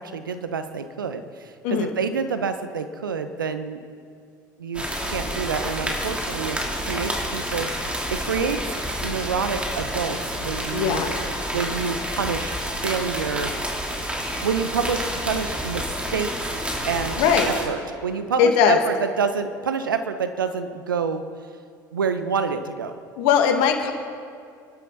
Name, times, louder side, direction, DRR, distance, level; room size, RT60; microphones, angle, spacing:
voice 1, 0.0-3.8 4.6-6.6 6.9-8.6 9.0-11.0 11.5-12.5 12.8-13.5 14.4-16.3 16.9-21.2 21.9-23.0, right 6 dB, 85° right, 9 dB, 1.0 m, -27 dB
sound 1, 4.7-17.6, equal, 10° right, 3.4 m, -29 dB
voice 2, 10.7-11.1 17.2-17.5 18.4-18.8 23.2-23.9, left 7 dB, 60° left, 4 dB, 2.2 m, -19 dB
27.5 x 11.5 x 4.2 m, 2.2 s
figure-of-eight pair, 70°, 11 cm